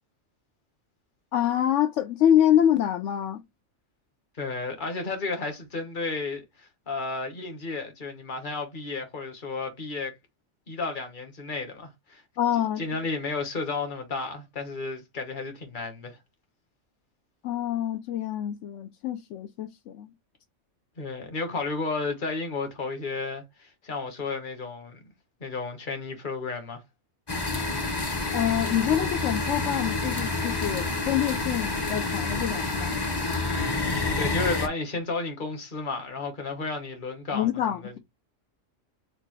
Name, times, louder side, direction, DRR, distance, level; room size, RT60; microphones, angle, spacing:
voice 1, 1.3-3.4 12.4-12.8 17.4-20.1 28.3-33.0 37.3-38.0, left 10 dB, 80° left, 0.9 m, -26 dB
voice 2, 4.4-10.2 10.7-12.2 12.8-16.2 21.0-25.0 25.4-26.8 34.2-37.5 37.8-38.0, left 3 dB, 45° left, 1.4 m, -32 dB
sound 1, 27.3-34.7, left 3 dB, 20° left, 0.8 m, -28 dB
6.6 x 2.5 x 3.2 m
omnidirectional pair, 1.3 m